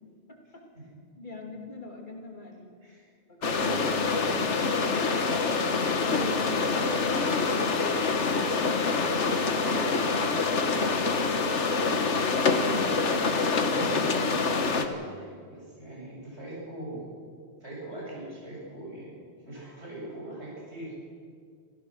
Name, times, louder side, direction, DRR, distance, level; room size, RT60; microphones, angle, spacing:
voice 1, 0.3-0.6 1.2-2.7 3.3-5.3 5.7-8.6, left 1 dB, 45° left, 0 dB, 2.8 m, -41 dB
sound 1, 3.4-14.9, left 4 dB, 90° left, 1.7 m, -26 dB
voice 2, 12.7-13.2 13.6-17.1 17.6-19.2 19.4-21.1, right 1 dB, 75° right, -5 dB, 8.4 m, -41 dB
26.5 x 16.0 x 6.5 m, 2.1 s
omnidirectional pair, 1.2 m